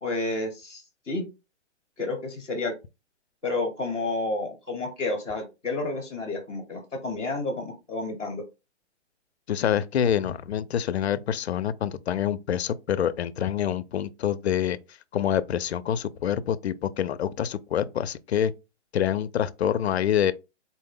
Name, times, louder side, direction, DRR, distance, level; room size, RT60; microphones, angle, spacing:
voice 1, 0.0-1.2 2.0-2.7 3.4-8.4, left 2 dB, 5° right, 0.6 m, -30 dB
voice 2, 9.5-14.8 15.1-18.5 18.9-20.3, left 9 dB, 65° left, 0.5 m, -26 dB
4.2 x 2.1 x 3.7 m
hypercardioid pair, 175°, 35 cm